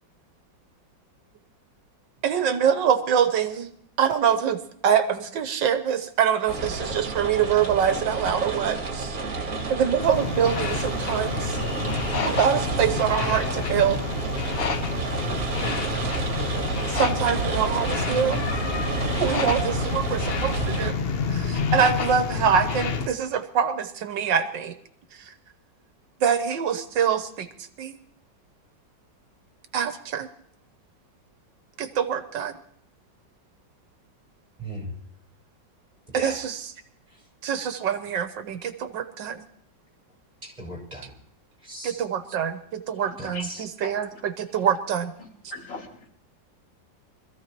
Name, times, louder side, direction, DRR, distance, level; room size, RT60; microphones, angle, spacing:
voice 1, 2.2-3.7 4.0-4.6 4.8-9.4 9.7-11.6 12.2-14.0 16.9-18.4 19.1-21.1 21.3-24.7 26.2-27.5 27.8-27.9 29.7-30.3 31.8-32.5 36.1-36.7 37.4-39.4 41.8-43.4 43.8-44.1 44.4-45.1, right 8 dB, 75° right, 9 dB, 1.6 m, -24 dB
sound 1, 6.5-20.9, right 3 dB, 55° right, 2.1 m, -30 dB
sound 2, 10.0-23.1, left 5 dB, 60° left, 0.6 m, -29 dB
voice 2, 34.6-34.9 36.1-36.4 40.4-41.1 41.6-42.0 43.2-43.3, right 1 dB, 20° right, -2 dB, 5.3 m, -37 dB
voice 3, 42.9-44.7 45.2-46.1, left 2 dB, 75° left, -3 dB, 4.0 m, -42 dB
24.5 x 14.5 x 3.0 m, 0.65 s
omnidirectional pair, 2.0 m